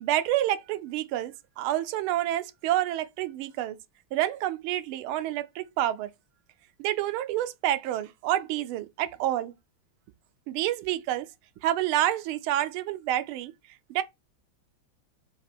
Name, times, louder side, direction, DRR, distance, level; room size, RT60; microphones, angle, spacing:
voice 1, 0.0-3.8 4.1-6.1 6.8-9.5 10.5-11.3 11.6-13.5 13.9-14.0, right 13 dB, 90° right, 1.4 m, -28 dB
4.1 x 2.9 x 4.2 m
omnidirectional pair, 2.3 m